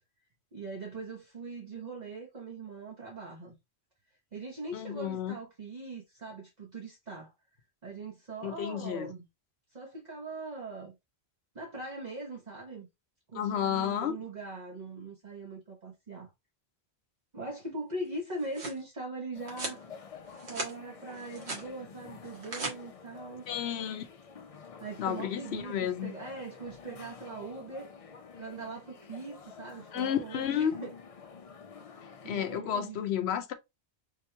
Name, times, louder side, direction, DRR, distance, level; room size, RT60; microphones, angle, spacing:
voice 1, 0.5-3.6 4.3-7.3 7.8-9.3 9.7-11.0 11.5-12.9 13.3-16.3 17.3-19.8 20.5-23.4 24.8-27.9 28.4-30.9 32.2-33.0, right 2 dB, 45° right, 1.0 m, -41 dB
voice 2, 4.7-5.4 8.4-9.1 13.3-14.2 23.5-24.0 25.0-26.1 29.9-30.7 32.3-33.5, left 9 dB, 80° left, 0.9 m, -31 dB
sound 1, 18.1-18.8 19.5-19.8 20.3-20.7 21.1-21.7 22.2-22.7, right 2 dB, 80° right, 1.6 m, -38 dB
sound 2, 19.3-32.6, left 5 dB, 45° left, 0.5 m, -49 dB
3.8 x 2.9 x 3.3 m
omnidirectional pair, 1.1 m